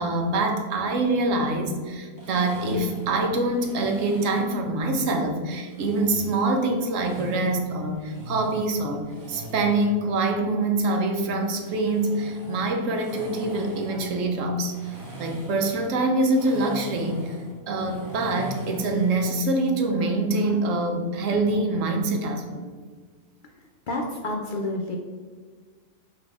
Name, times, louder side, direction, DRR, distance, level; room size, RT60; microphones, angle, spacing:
voice 1, 0.0-14.9 15.2-17.4 17.7-22.6, right 2 dB, 70° right, 3 dB, 1.1 m, -25 dB
sound 1, 2.2-4.6 5.7-7.5 7.9-9.9 11.3-19.3, right 1 dB, 15° right, 0.8 m, -40 dB
voice 2, 23.9-25.0, left 2 dB, 65° left, 1 dB, 0.5 m, -29 dB
4.1 x 2.8 x 4.7 m, 1.5 s
omnidirectional pair, 1.4 m